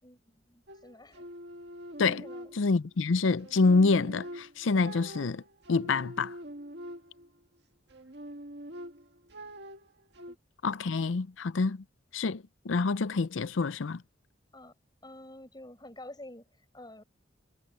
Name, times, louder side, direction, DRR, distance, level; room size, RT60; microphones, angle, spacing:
voice 1, 0.0-1.3 2.2-2.5 10.3-10.4 14.5-14.7 15.0-17.0, left 1 dB, 20° left, 5.3 m, -49 dB
sound 1, 0.7-3.0 3.4-7.4 7.9-10.4, equal, 60° right, 2.0 m, -45 dB
voice 2, 2.5-5.4 5.7-6.3 10.6-11.8 12.1-14.0, left 4 dB, 80° left, 0.6 m, -27 dB
head